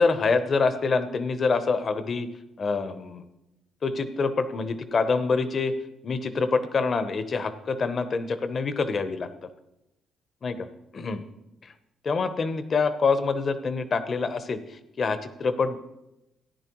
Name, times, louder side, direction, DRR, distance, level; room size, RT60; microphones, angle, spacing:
voice 1, 0.0-2.3 2.6-3.2 3.8-9.3 10.4-10.7 10.9-11.2 11.6-11.7 12.0-14.6 15.0-15.8, left 4 dB, 45° left, 11 dB, 0.9 m, -26 dB
14.0 x 9.9 x 3.1 m, 0.92 s
cardioid pair, 85°, 0 cm